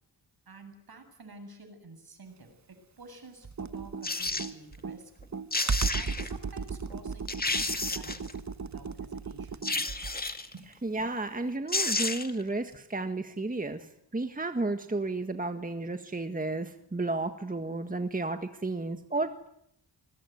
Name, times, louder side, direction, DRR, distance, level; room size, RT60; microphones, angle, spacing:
voice 1, 0.5-5.1 5.9-7.3 7.6-8.3 8.6-9.9 10.5-10.7, right 3 dB, 55° right, 7 dB, 7.7 m, -50 dB
Computer keyboard, 3.4-10.3, right 5 dB, 40° right, 1.3 m, -35 dB
sound 1, 4.0-4.5 5.2-5.3 5.5-6.3 6.9-7.0 7.3-8.3 9.6-10.5 11.4-11.5 11.7-12.4 12.7-12.8, left 2 dB, 20° left, 2.2 m, -31 dB
voice 2, 10.8-19.5, right 2 dB, 20° right, 7 dB, 1.8 m, -32 dB
26.5 x 21.5 x 9.5 m, 0.76 s
cardioid pair, 80°, 43 cm